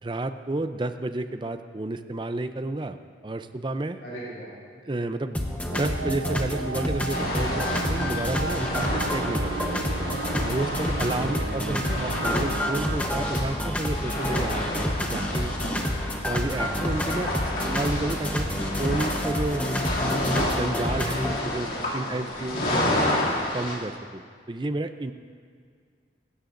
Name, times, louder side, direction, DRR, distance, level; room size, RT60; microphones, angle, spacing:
voice 1, 0.0-3.0 3.2-4.0 4.9-9.8 10.4-15.5 16.2-19.6 20.3-23.2 23.5-25.1, right 2 dB, 25° right, 9 dB, 0.5 m, -31 dB
voice 2, 4.0-4.5 7.1-7.3 11.0-11.4 17.5-17.9 22.0-22.2, equal, 80° left, -9 dB, 4.4 m, -39 dB
sound 1, 5.3-21.4, left 1 dB, 10° left, 0.9 m, -29 dB
sound 2, 5.7-13.0, right 4 dB, 80° right, 0.5 m, -35 dB
sound 3, 7.1-23.7, left 1 dB, 50° left, 2.6 m, -31 dB
25.0 x 13.0 x 2.6 m, 2.1 s
head